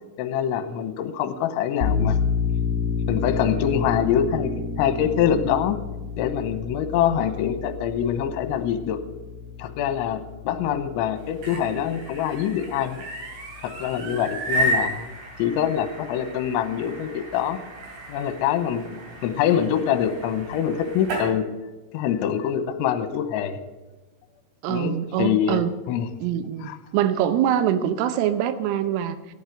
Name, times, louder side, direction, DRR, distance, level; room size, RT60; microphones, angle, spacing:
voice 1, 0.2-2.2 3.1-4.5 4.8-5.8 6.2-9.0 9.6-13.0 13.6-15.1 15.4-17.6 18.1-21.4 21.9-23.6 24.7-25.6 25.9-26.1 26.6-26.8, left 9 dB, 80° left, 9 dB, 3.0 m, -24 dB
sound 1, 1.8-13.1, left 5 dB, 10° right, 5.6 m, -30 dB
sound 2, 11.2-21.3, right 1 dB, 65° right, 4.6 m, -33 dB
voice 2, 24.6-25.7 26.2-29.2, right 10 dB, 90° right, 12 dB, 3.6 m, -24 dB
14.5 x 9.5 x 6.6 m, 1.2 s
omnidirectional pair, 5.8 m